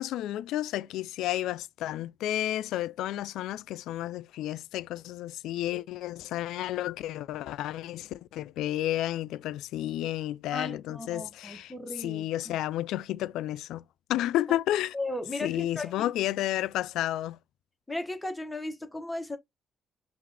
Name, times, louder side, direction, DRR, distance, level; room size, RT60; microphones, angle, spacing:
voice 1, 0.0-13.8 14.1-14.9 15.4-17.4, left 13 dB, 90° left, 0.3 m, -31 dB
voice 2, 10.5-12.5 14.9-16.1 17.9-19.4, left 2 dB, 10° left, 1.0 m, -36 dB
5.7 x 2.4 x 3.3 m
cardioid pair, 90°, 0 cm